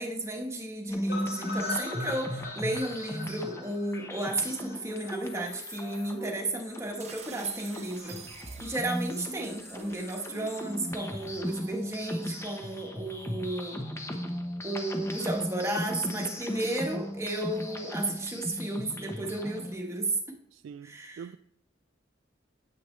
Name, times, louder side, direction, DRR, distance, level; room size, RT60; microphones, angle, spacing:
voice 1, 0.0-8.2 8.6-13.8 14.6-20.1 20.8-21.2, right 1 dB, 15° right, 1.3 m, -33 dB
sound 1, 0.9-19.8, equal, 15° left, 0.9 m, -37 dB
sound 2, 1.1-5.1 5.4-5.5 5.8-5.9 6.2-6.3, left 2 dB, 60° left, 3.4 m, -39 dB
sound 3, 7.0-11.7, right 8 dB, 35° right, 0.7 m, -50 dB
voice 2, 20.5-21.4, right 7 dB, 85° right, 0.3 m, -44 dB
9.5 x 8.6 x 3.2 m
head